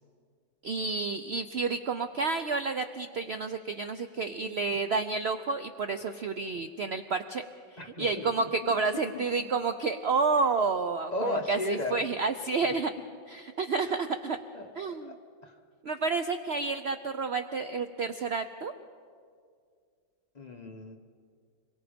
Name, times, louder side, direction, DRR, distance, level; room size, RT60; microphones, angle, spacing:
voice 1, 0.6-7.4 7.7-12.9 13.3-14.4 14.8-15.1 15.8-18.7, right 4 dB, 75° right, 8 dB, 0.5 m, -30 dB
voice 2, 7.8-8.7 9.1-9.5 11.1-12.0 13.8-13.9 14.5-15.1 15.4-15.6 20.3-20.9, left 2 dB, 25° left, 3 dB, 1.2 m, -36 dB
25.5 x 23.0 x 5.2 m, 2.1 s
omnidirectional pair, 1.9 m